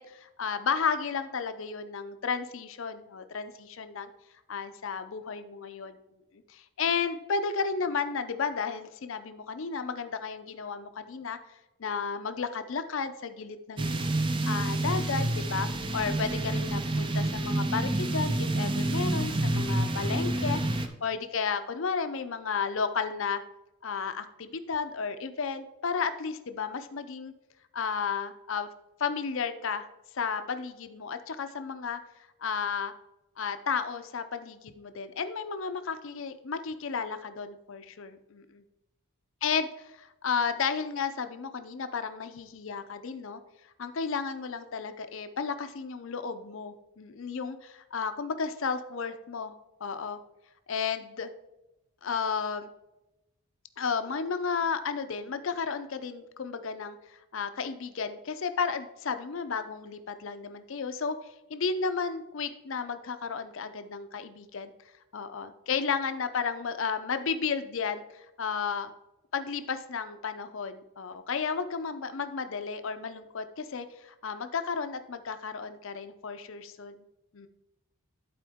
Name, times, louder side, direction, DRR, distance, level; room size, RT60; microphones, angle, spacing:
voice 1, 0.0-4.1 4.5-6.0 6.5-11.4 11.8-20.6 21.0-23.4 23.8-27.3 27.7-28.7 29.0-29.9 30.1-32.0 32.4-32.9 33.4-38.6 39.4-43.4 43.8-50.2 50.7-51.3 52.0-52.7 53.8-64.7 65.1-68.9 69.3-77.0 77.3-77.5, left 5 dB, 60° left, 10 dB, 0.5 m, -33 dB
sound 1, 13.8-20.9, right 1 dB, 20° right, 0.4 m, -28 dB
11.0 x 4.4 x 3.6 m, 0.97 s
head